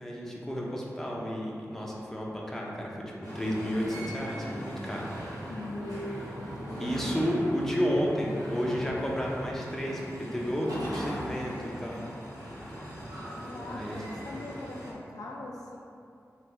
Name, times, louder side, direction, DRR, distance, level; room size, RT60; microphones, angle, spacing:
voice 1, 0.0-3.0 3.3-5.1 6.8-12.0 13.7-14.0, equal, 5° left, -4 dB, 0.6 m, -31 dB
sound 1, 3.2-14.9, equal, 85° right, 0.8 m, -39 dB
voice 2, 5.5-6.3 6.6-7.3 13.4-15.8, left 1 dB, 80° left, -2 dB, 0.4 m, -40 dB
3.3 x 2.5 x 3.0 m, 2.5 s
cardioid pair, 40°, 6 cm